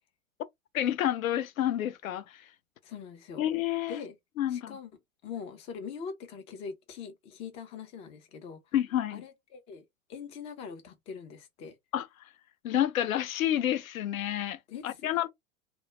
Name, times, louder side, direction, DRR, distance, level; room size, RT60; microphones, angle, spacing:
voice 1, 0.7-2.4 3.4-4.0 4.4-4.8 8.7-9.2 11.9-12.3 12.6-15.3, left 11 dB, 80° left, 0.5 m, -29 dB
voice 2, 2.8-3.4 3.9-4.2 4.5-4.9 5.2-8.6 9.1-9.8 10.1-11.8 14.7-15.0, left 6 dB, 15° left, 0.3 m, -42 dB
2.2 x 2.0 x 2.9 m
hypercardioid pair, 100°, 41 cm